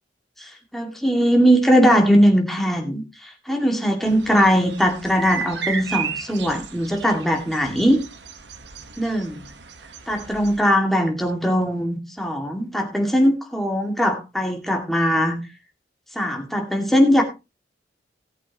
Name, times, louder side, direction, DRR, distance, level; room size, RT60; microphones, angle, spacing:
voice 1, 0.4-8.0 9.0-9.4 10.1-15.4 16.2-17.2, equal, ahead, 2 dB, 2.3 m, -20 dB
sound 1, 4.0-10.6, right 6 dB, 75° right, 1.4 m, -34 dB
17.5 x 8.3 x 3.0 m, 0.26 s
head